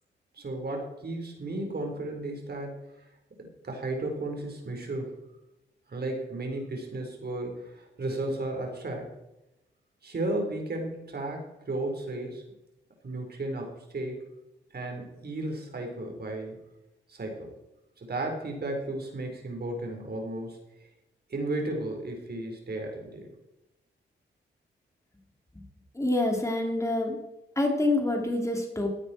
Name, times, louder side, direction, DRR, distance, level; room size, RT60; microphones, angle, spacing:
voice 1, 0.3-2.7 3.4-5.2 5.9-9.1 10.0-12.4 13.0-14.3 14.7-16.6 17.1-17.5 18.0-20.6 21.3-23.3, right 2 dB, 55° right, 2 dB, 4.4 m, -34 dB
voice 2, 25.9-27.2 27.5-28.9, left 2 dB, 15° left, 1 dB, 3.4 m, -26 dB
16.0 x 9.6 x 4.5 m, 0.94 s
cardioid pair, 55°, 20 cm